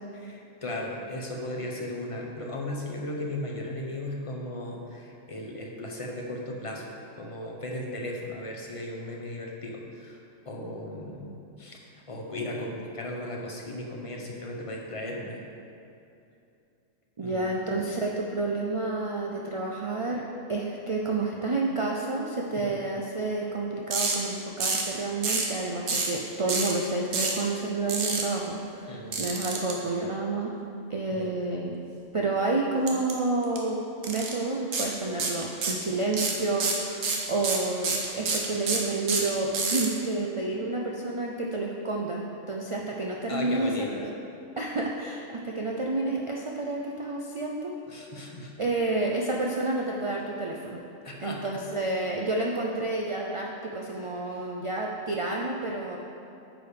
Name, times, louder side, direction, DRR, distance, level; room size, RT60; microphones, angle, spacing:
voice 1, 0.1-10.2 10.4-11.8 12.1-15.4 17.2-17.5 28.9-29.3 31.1-31.3 43.3-44.1 47.9-48.5 51.0-51.6 54.0-54.4, left 1 dB, 30° left, -1 dB, 0.9 m, -36 dB
voice 2, 17.2-20.2 20.5-30.5 30.9-31.8 32.1-33.8 34.0-43.9 44.6-47.7 48.6-50.8 51.2-56.0, right 2 dB, 55° right, -1 dB, 0.3 m, -30 dB
sound 1, 23.9-24.2 24.6-24.9 25.2-25.5 25.9-26.2 26.5-26.7 27.1-27.4 27.9-28.2 29.1-29.7 32.9-33.1 33.4-33.6 34.0-34.3 34.7-34.9 35.2-35.8 36.1-39.9, right 4 dB, 75° right, 1.3 m, -27 dB
9.1 x 5.0 x 5.1 m, 2.7 s
omnidirectional pair, 1.4 m